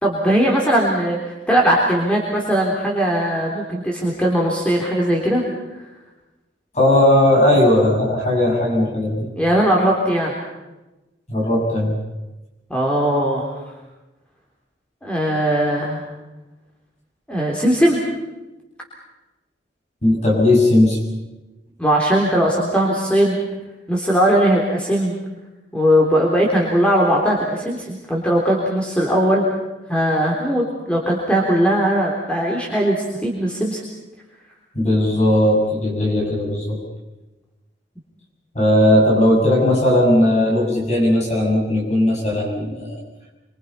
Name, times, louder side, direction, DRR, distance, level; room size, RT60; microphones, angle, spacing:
voice 1, 0.0-5.4 5.7-5.8 9.4-10.3 12.7-13.5 15.0-16.0 17.3-18.0 21.8-23.4 23.9-25.2 25.7-29.4 29.9-33.8, equal, 5° left, -2 dB, 3.6 m, -19 dB
voice 2, 6.7-9.3 11.3-12.0 20.0-21.0 34.7-36.8 38.5-43.0, left 1 dB, 40° left, -1 dB, 6.7 m, -17 dB
27.0 x 25.5 x 5.7 m, 1.1 s
head